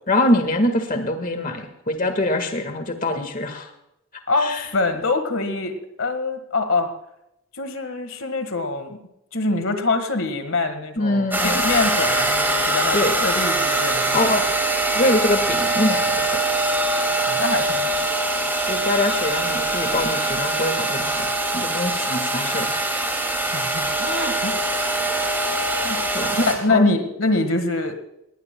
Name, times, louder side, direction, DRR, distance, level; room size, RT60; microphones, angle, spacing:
voice 1, 0.1-3.7 4.4-4.7 11.0-11.6 12.9-13.1 14.1-14.4 14.9-16.4 18.7-22.8 26.1-26.4 26.6-26.9, left 1 dB, 35° left, 6 dB, 1.6 m, -24 dB
voice 2, 4.3-6.9 7.5-9.0 9.3-14.2 17.3-18.0 23.5-24.6 25.8-26.0 26.3-28.0, left 3 dB, 65° left, 8 dB, 1.6 m, -24 dB
sound 1, 11.3-26.5, right 2 dB, 10° right, 2.4 m, -23 dB
19.5 x 19.0 x 2.2 m, 0.82 s
head